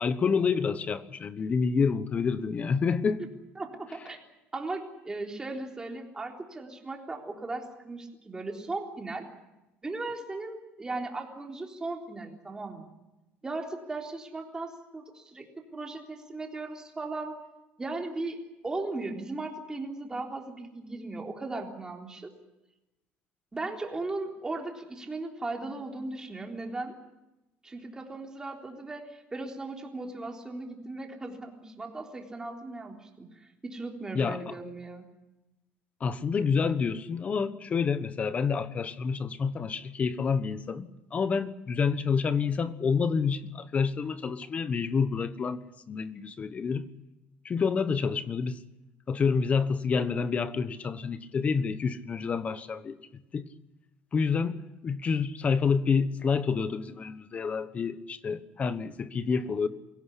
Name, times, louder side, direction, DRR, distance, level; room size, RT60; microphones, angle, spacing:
voice 1, 0.0-3.2 34.1-34.5 36.0-45.6 45.9-46.9 47.4-48.6 49.1-53.0 53.3-53.5 54.1-59.7, left 5 dB, 30° left, 1.2 m, -28 dB
voice 2, 3.6-4.2 4.5-9.3 9.8-12.9 13.4-17.3 17.8-18.4 18.6-22.3 23.5-27.0 27.6-35.1, right 2 dB, 15° right, 3.7 m, -37 dB
23.0 x 16.5 x 10.0 m
cardioid pair, 125°, 4 cm